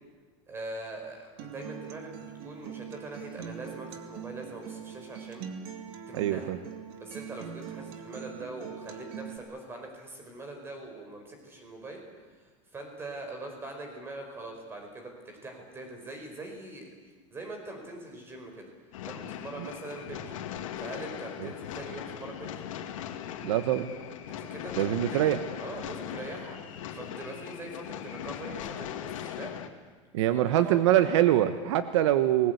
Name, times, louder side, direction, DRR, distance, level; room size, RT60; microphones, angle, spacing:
voice 1, 0.5-5.4 6.1-6.5 7.0-12.0 12.3-16.9 17.3-18.7 19.0-20.3 20.8-22.6 24.2-29.5 30.3-30.8, right 2 dB, 15° right, 3 dB, 5.0 m, -42 dB
Acoustic guitar, 1.4-9.4, right 8 dB, 50° right, 2.6 m, -42 dB
voice 2, 6.1-6.6 19.6-19.7 23.4-23.9 24.8-25.4 30.1-32.5, right 12 dB, 65° right, 10 dB, 1.3 m, -24 dB
sound 1, 18.9-29.7, left 10 dB, 85° left, 2.5 m, -39 dB
28.5 x 20.5 x 8.2 m, 1.4 s
supercardioid pair, 170°, 16 cm